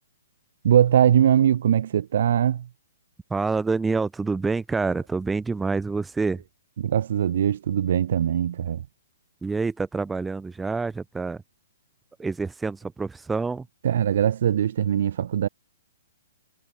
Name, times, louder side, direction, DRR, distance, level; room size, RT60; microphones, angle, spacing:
voice 1, 0.6-2.7 6.8-8.8 13.8-15.5, right 10 dB, 60° right, 1.0 m, -21 dB
voice 2, 3.3-6.4 9.4-11.4 12.2-13.7, right 4 dB, 5° right, 0.6 m, -27 dB
hypercardioid pair, 150°, 0 cm